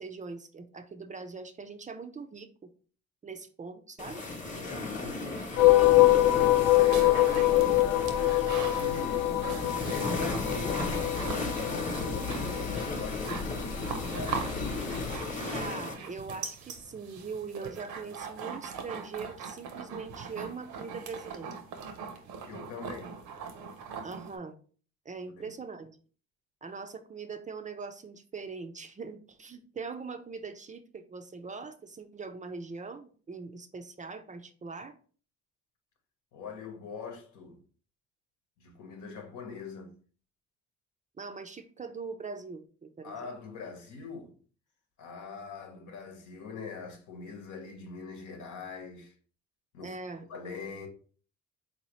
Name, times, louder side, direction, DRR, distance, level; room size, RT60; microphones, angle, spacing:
voice 1, 0.0-2.7 3.2-4.2 15.5-21.5 24.0-24.6 25.1-26.0 26.6-34.9 41.2-43.1 49.8-50.3, right 4 dB, 25° right, 0.4 m, -41 dB
sound 1, 4.0-15.9, left 3 dB, 25° left, 0.9 m, -36 dB
voice 2, 4.5-5.4 6.3-9.4 9.8-15.1 22.4-23.2 25.4-25.5 36.3-37.6 38.6-39.9 43.0-44.4 45.0-49.1 49.7-50.9, left 4 dB, 85° left, 1.0 m, -42 dB
sound 2, 5.6-15.2, left 15 dB, 55° left, 0.5 m, -25 dB
sound 3, 6.3-24.4, right 5 dB, 85° right, 0.7 m, -41 dB
3.9 x 2.8 x 3.0 m
cardioid pair, 90°, 30 cm